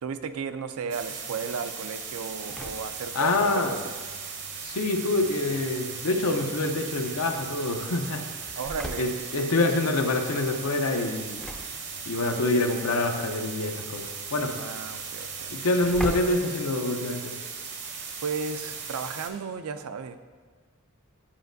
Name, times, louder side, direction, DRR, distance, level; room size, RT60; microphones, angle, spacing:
voice 1, 0.0-3.9 8.6-9.1 14.5-15.5 18.2-20.2, right 5 dB, 75° right, 11 dB, 0.4 m, -34 dB
sound 1, 0.9-19.3, right 5 dB, 55° right, 0.8 m, -38 dB
Engine / Slam, 2.2-17.3, equal, 5° left, 0.4 m, -44 dB
voice 2, 3.1-3.8 4.6-8.2 9.0-11.4 12.1-14.0 14.3-14.5 15.5-17.3, left 2 dB, 75° left, 5 dB, 0.7 m, -26 dB
9.9 x 5.0 x 2.6 m, 1.5 s
head